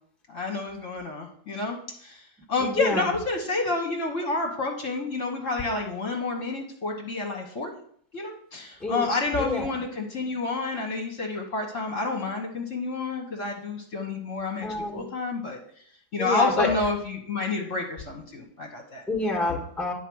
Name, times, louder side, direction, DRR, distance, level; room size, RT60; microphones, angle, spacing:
voice 1, 0.3-1.8 2.5-7.7 8.1-14.7 14.9-15.6 16.1-19.0, left 3 dB, 50° left, 0 dB, 1.5 m, -29 dB
voice 2, 2.6-3.1 8.8-9.1 9.4-9.7 14.6-15.0 16.2-16.7 19.1-19.9, left 2 dB, ahead, 0 dB, 1.4 m, -27 dB
9.9 x 4.6 x 6.2 m, 0.62 s
omnidirectional pair, 1.9 m